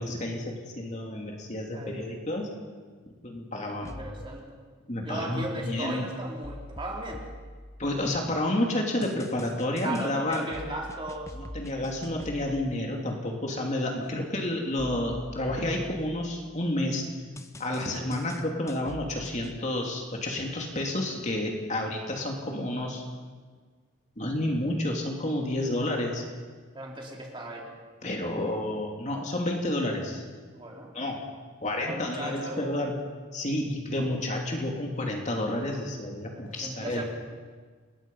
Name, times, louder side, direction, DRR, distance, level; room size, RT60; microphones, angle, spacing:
voice 1, 0.0-2.5 3.2-4.0 4.9-6.1 7.8-10.5 11.4-17.0 17.6-23.0 24.2-26.2 28.0-30.2 30.9-31.2 31.6-33.0 33.3-37.0, left 1 dB, 35° left, 1 dB, 2.9 m, -30 dB
sound 1, 3.8-4.4 6.4-8.3 9.0-12.7 14.8-16.6 17.4-19.6, left 1 dB, 15° left, 0.7 m, -44 dB
voice 2, 3.8-4.6 5.0-7.2 9.8-11.3 14.0-14.4 17.9-18.0 26.7-27.7 30.5-30.9 31.9-32.6 36.3-37.0, right 1 dB, 25° right, -1 dB, 3.9 m, -37 dB
28.5 x 21.0 x 5.6 m, 1.5 s
head